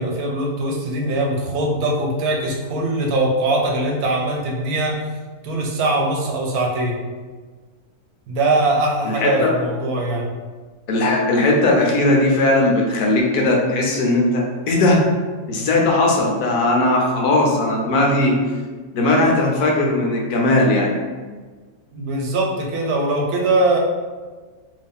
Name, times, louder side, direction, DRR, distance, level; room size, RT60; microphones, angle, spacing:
voice 1, 0.0-5.0 5.4-7.0 8.3-10.3 21.9-23.8, right 2 dB, 75° right, 0 dB, 1.1 m, -21 dB
voice 2, 9.0-9.5 10.9-15.0 15.5-18.4 18.9-20.9, left 2 dB, 75° left, -1 dB, 1.2 m, -18 dB
2.9 x 2.7 x 3.5 m, 1.4 s
omnidirectional pair, 1.6 m